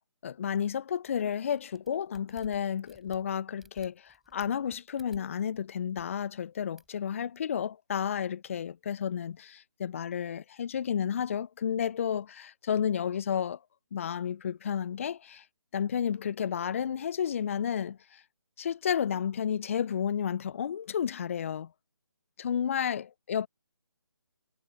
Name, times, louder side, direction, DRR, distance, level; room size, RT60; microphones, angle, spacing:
voice 1, 0.2-13.6 13.9-15.4 15.7-18.2 18.6-21.7 22.4-23.5, left 8 dB, 30° left, 0.7 m, -31 dB
sound 1, 1.6-5.6 5.9-6.0 6.8-7.0, right 2 dB, ahead, 7.0 m, -59 dB
figure-of-eight pair, 150°, 13 cm